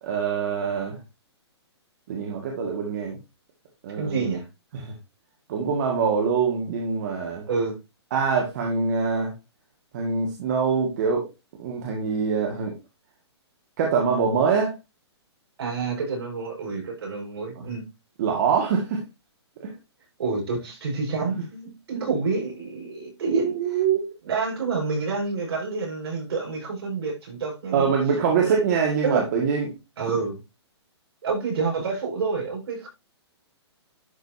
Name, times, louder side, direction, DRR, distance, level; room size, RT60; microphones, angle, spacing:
voice 1, 0.0-1.0 2.1-3.2 3.8-4.3 4.7-4.9 5.5-7.5 8.1-9.3 9.9-11.3 11.6-12.7 13.8-14.8 17.6-17.7 18.2-19.0 19.6-19.7 21.2-21.3 22.0-22.1 23.2-24.1 27.7-29.8, right 6 dB, 40° right, 1.9 m, -24 dB
voice 2, 4.0-4.4 7.5-7.8 15.6-17.8 20.2-23.8 24.2-27.9 28.4-28.6 29.0-29.2 30.0-30.4 31.2-32.9, right 4 dB, 65° right, 5.4 m, -28 dB
11.5 x 5.3 x 2.7 m
hypercardioid pair, 160°, 15 cm